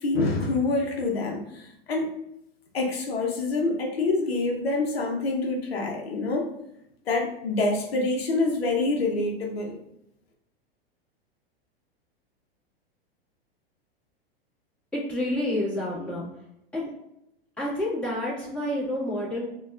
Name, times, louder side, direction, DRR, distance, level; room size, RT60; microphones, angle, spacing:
voice 1, 0.0-2.1 2.7-6.5 7.1-9.7, left 3 dB, 85° left, 1 dB, 0.7 m, -26 dB
voice 2, 14.9-16.2 16.7-16.9 17.6-19.5, left 1 dB, 5° left, -8 dB, 1.5 m, -29 dB
4.2 x 2.3 x 2.4 m, 0.81 s
hypercardioid pair, 105°, 30 cm